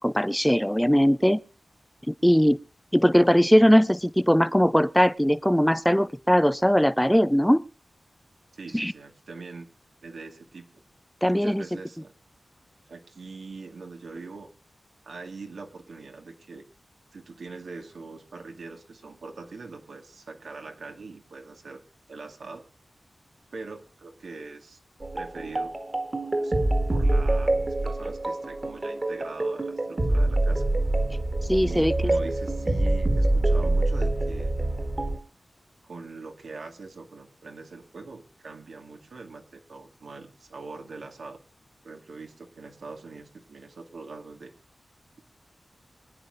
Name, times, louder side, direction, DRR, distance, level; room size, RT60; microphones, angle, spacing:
voice 1, 0.0-1.4 2.1-2.6 2.9-7.6 8.7-8.9 11.2-11.6 31.5-31.9, equal, 5° left, 0.5 m, -20 dB
voice 2, 8.5-9.7 10.0-10.8 11.3-12.1 12.9-14.5 15.0-16.6 17.1-21.8 22.1-22.6 23.5-24.8 25.1-25.7 26.4-26.5 26.9-27.5 27.8-30.6 31.6-34.6 35.8-41.4 41.8-44.5, right 4 dB, 85° right, 2.3 m, -42 dB
sound 1, 25.0-35.2, right 2 dB, 30° right, 1.9 m, -25 dB
24.5 x 9.9 x 2.6 m
wide cardioid pair, 100°, 0 cm